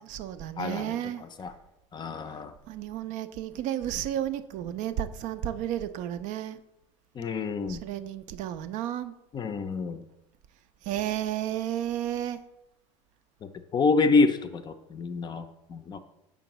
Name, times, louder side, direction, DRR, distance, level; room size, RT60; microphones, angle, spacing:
voice 1, 0.0-1.2 2.7-6.6 7.7-9.1 10.8-12.4, right 11 dB, 50° right, 0.4 m, -32 dB
voice 2, 0.6-1.0 1.4-1.5 1.9-2.5 7.2-7.8 9.3-10.0 13.7-16.0, left 4 dB, 25° left, 0.5 m, -27 dB
6.9 x 5.1 x 3.0 m
hypercardioid pair, 80°, 16 cm